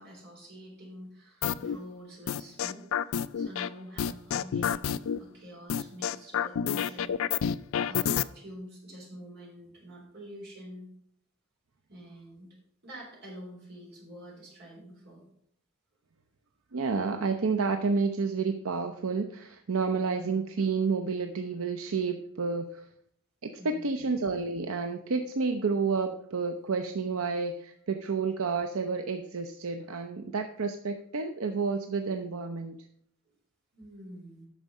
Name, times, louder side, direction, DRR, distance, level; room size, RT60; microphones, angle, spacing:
voice 1, 0.0-7.4 7.9-10.9 11.9-12.5 12.8-15.2 23.6-24.0 33.7-34.5, equal, 45° right, -3 dB, 3.8 m, -47 dB
sound 1, 1.4-1.8 2.3-3.7 4.0-5.2 5.7-8.2, left 8 dB, 65° left, 0.3 m, -28 dB
voice 2, 16.7-22.9 23.4-32.8, right 4 dB, 75° right, 6 dB, 0.6 m, -30 dB
9.1 x 6.1 x 5.4 m, 0.69 s
head